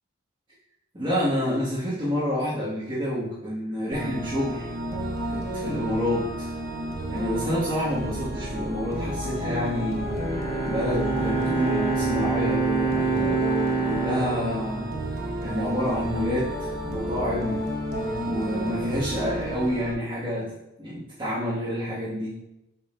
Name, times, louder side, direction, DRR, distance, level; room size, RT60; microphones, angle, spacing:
voice 1, 0.9-4.7 5.3-6.5 7.1-10.1 10.6-13.3 13.8-14.9 15.4-17.6 18.2-20.5 20.8-22.3, equal, 25° right, -12 dB, 2.0 m, -28 dB
sound 1, 3.9-19.9, equal, 45° right, 1.3 m, -31 dB
Bowed string instrument, 10.0-15.4, right 4 dB, 25° left, 1.0 m, -27 dB
7.7 x 6.9 x 2.7 m, 0.90 s
head